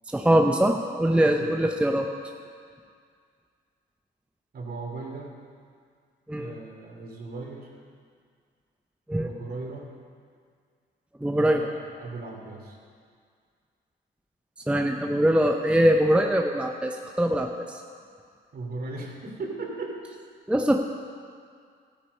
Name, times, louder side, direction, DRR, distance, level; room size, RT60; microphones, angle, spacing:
voice 1, 0.1-2.1 6.3-6.5 9.1-9.3 11.2-11.7 14.7-17.8 20.5-20.8, right 1 dB, 5° right, 3 dB, 0.7 m, -22 dB
voice 2, 4.5-5.3 6.3-7.7 9.2-9.9 11.3-12.8 18.5-20.0, right 3 dB, 50° right, 0 dB, 2.7 m, -37 dB
13.5 x 9.0 x 5.4 m, 2.1 s
cardioid pair, 90°, 20 cm